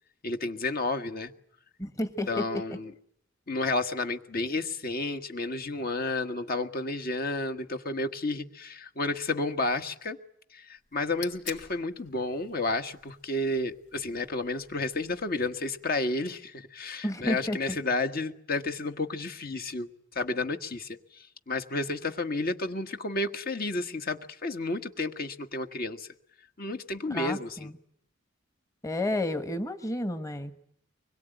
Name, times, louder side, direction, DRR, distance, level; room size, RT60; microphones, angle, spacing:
voice 1, 0.2-1.3 2.3-2.9 3.5-10.2 10.5-19.9 20.1-21.0 21.5-26.1 26.6-27.7, left 2 dB, 50° left, 7 dB, 1.5 m, -31 dB
voice 2, 1.8-2.6 17.0-17.6 27.1-27.8 28.8-30.6, left 1 dB, 15° left, 9 dB, 1.3 m, -31 dB
sound 1, 10.8-16.0, left 7 dB, 70° left, 4.1 m, -49 dB
25.0 x 22.0 x 9.2 m, 0.69 s
head